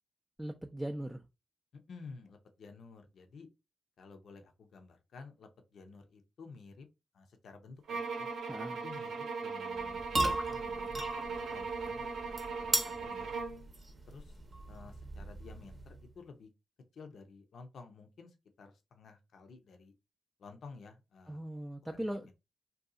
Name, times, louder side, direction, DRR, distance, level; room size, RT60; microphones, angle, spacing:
voice 1, 0.4-1.2 8.5-8.8 21.3-22.3, right 1 dB, 10° right, 0.4 m, -39 dB
voice 2, 1.7-3.5 4.0-6.9 7.1-8.3 8.8-13.3 14.1-14.4 14.7-16.5 16.9-19.9 20.4-21.4 21.8-22.3, left 4 dB, 70° left, 0.6 m, -53 dB
sound 1, 7.9-13.6, right 4 dB, 75° right, 0.6 m, -39 dB
sound 2, 9.7-16.1, right 2 dB, 40° right, 0.7 m, -38 dB
2.7 x 2.3 x 3.6 m
cardioid pair, 65°, 0 cm